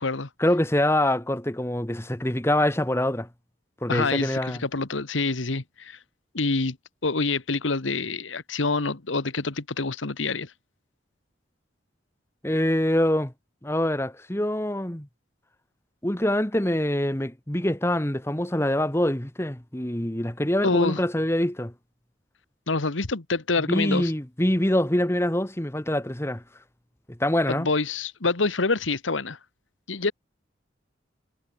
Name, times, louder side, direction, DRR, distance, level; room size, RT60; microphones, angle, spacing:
voice 1, 0.4-3.3 3.8-4.6 12.4-13.3 13.6-15.1 16.0-21.7 23.7-26.4 27.2-27.7, left 1 dB, 15° left, 1.4 m, -25 dB
voice 2, 3.9-6.0 6.3-6.8 7.0-10.5 20.6-21.0 22.7-24.1 27.5-29.4 29.9-30.1, left 3 dB, 85° left, 1.5 m, -26 dB
head